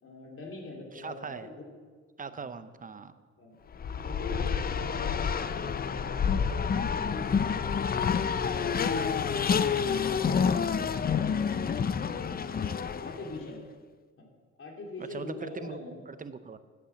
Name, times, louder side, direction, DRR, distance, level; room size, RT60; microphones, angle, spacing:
voice 1, 0.0-1.7 2.3-2.5 3.4-3.6 4.0-7.9 8.2-9.1 9.5-10.6 11.7-13.6 14.2-14.3 14.6-15.9, left 2 dB, 45° left, -1 dB, 3.2 m, -43 dB
voice 2, 0.9-1.5 2.2-3.1 15.0-15.8 16.1-16.6, right 5 dB, 25° right, 12 dB, 0.7 m, -40 dB
Race car auto racing, 3.7-13.4, left 6 dB, 30° left, 0.5 m, -28 dB
10.0 x 8.4 x 7.1 m, 1.5 s
cardioid pair, 90°, 30 cm